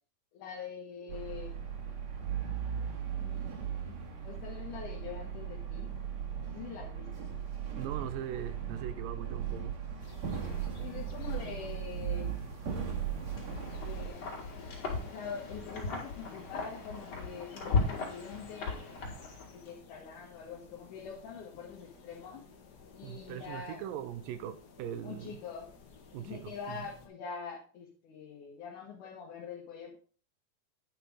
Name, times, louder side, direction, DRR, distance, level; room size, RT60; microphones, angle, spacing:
voice 1, 0.3-1.6 3.1-5.9 6.4-7.3 10.8-12.4 13.5-14.3 15.0-18.9 19.5-22.5 22.9-23.8 25.0-25.7 26.2-30.0, left 6 dB, 65° left, 2.8 m, -44 dB
sound 1, 1.1-14.1, right 8 dB, 55° right, 3.0 m, -37 dB
voice 2, 7.8-9.8 23.0-25.4 26.1-26.9, right 10 dB, 80° right, 2.4 m, -40 dB
sound 2, 10.0-27.1, left 4 dB, 85° left, 0.8 m, -56 dB
Wind, 13.2-19.7, left 3 dB, 50° left, 3.5 m, -36 dB
10.5 x 5.9 x 5.0 m
omnidirectional pair, 4.1 m